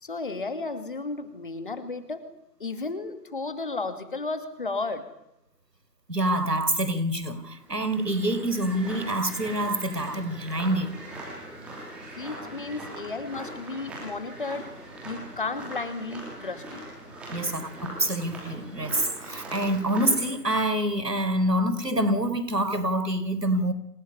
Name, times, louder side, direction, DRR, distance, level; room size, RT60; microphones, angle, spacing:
voice 1, 0.0-2.3 2.6-5.1 12.1-14.7 15.0-16.8, left 3 dB, 30° left, 11 dB, 2.5 m, -33 dB
voice 2, 6.1-10.9 17.3-23.7, right 1 dB, 80° right, 12 dB, 4.5 m, -26 dB
sound 1, 7.5-20.3, right 1 dB, ahead, 2.7 m, -41 dB
27.5 x 18.0 x 9.7 m, 0.84 s
figure-of-eight pair, 160°, 48 cm